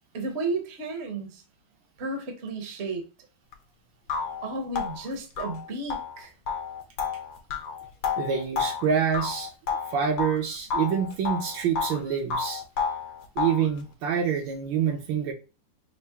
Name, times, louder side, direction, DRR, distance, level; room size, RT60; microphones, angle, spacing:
voice 1, 0.1-1.4 2.0-3.0 4.4-6.3, right 2 dB, 45° right, 0.9 m, -33 dB
sound 1, 3.5-3.6 4.1-10.4 10.7-12.0 12.3-13.7, left 5 dB, 80° left, 1.5 m, -31 dB
voice 2, 8.2-9.5 9.9-12.6 13.4-15.3, right 7 dB, 75° right, 1.4 m, -26 dB
5.6 x 2.0 x 3.4 m
omnidirectional pair, 2.2 m